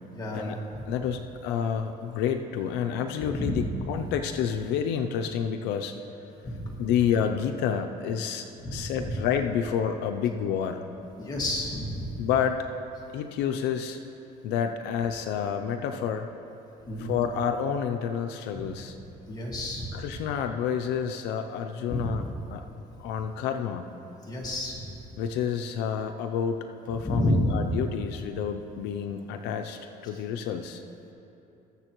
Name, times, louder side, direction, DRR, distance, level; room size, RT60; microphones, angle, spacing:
voice 1, 0.1-0.8 3.4-3.7 4.0-4.1 6.4-6.9 8.6-9.1 11.2-12.1 16.9-17.2 18.5-18.7 19.3-20.0 21.9-22.1 24.3-24.9 27.0-27.5, equal, 25° left, -3 dB, 2.0 m, -31 dB
voice 2, 0.9-6.0 6.8-10.8 12.2-12.6 13.1-14.0 14.4-16.3 17.0-19.0 19.9-22.7 23.0-23.9 25.2-30.8, left 8 dB, 90° left, 6 dB, 0.5 m, -29 dB
20.0 x 7.1 x 3.0 m, 2.9 s
cardioid pair, 110°, 17 cm